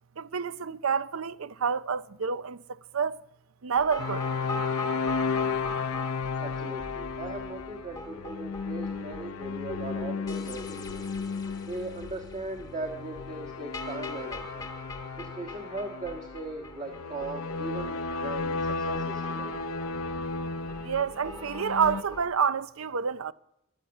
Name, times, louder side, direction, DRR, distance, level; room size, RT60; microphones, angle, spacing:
voice 1, 0.2-3.2 3.6-4.3 20.8-23.3, right 6 dB, 75° right, 0.6 m, -28 dB
sound 1, 3.8-22.3, left 1 dB, 15° left, 1.0 m, -42 dB
sound 2, 4.0-22.0, left 4 dB, 85° left, 0.6 m, -34 dB
voice 2, 6.4-11.1 11.7-14.7 15.2-19.6, right 2 dB, 35° right, 1.6 m, -39 dB
14.0 x 12.0 x 7.1 m
head